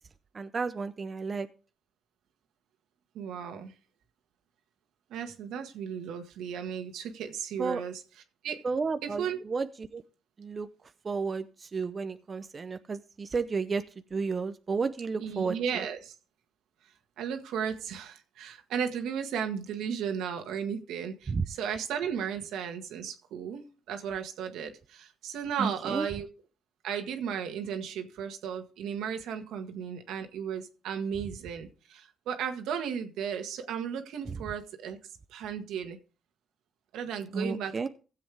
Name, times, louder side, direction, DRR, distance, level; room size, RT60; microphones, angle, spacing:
voice 1, 0.3-1.5 7.6-7.8 8.6-10.0 10.4-10.7 11.0-13.8 14.1-15.8 21.3-21.4 25.6-26.1 34.3-34.4 37.3-37.9, right 4 dB, 35° right, 9 dB, 0.7 m, -32 dB
voice 2, 3.2-3.7 5.1-7.9 8.4-8.6 9.0-9.4 15.2-16.1 17.2-26.3 26.8-35.0 35.3-36.0 36.9-37.9, right 7 dB, 85° right, 6 dB, 1.7 m, -35 dB
16.0 x 7.7 x 3.4 m, 0.35 s
cardioid pair, 90°, 0 cm